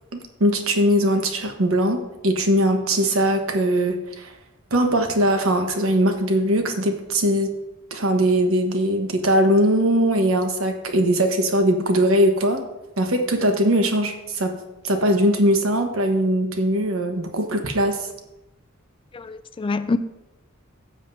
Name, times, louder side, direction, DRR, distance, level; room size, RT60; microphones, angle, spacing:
voice 1, 0.1-4.3 4.7-7.5 7.9-12.6 13.0-14.6 14.8-18.1, right 1 dB, 70° right, 1.2 m, -20 dB
voice 2, 19.1-20.0, left 3 dB, 25° left, 0.3 m, -25 dB
12.5 x 7.6 x 2.7 m
head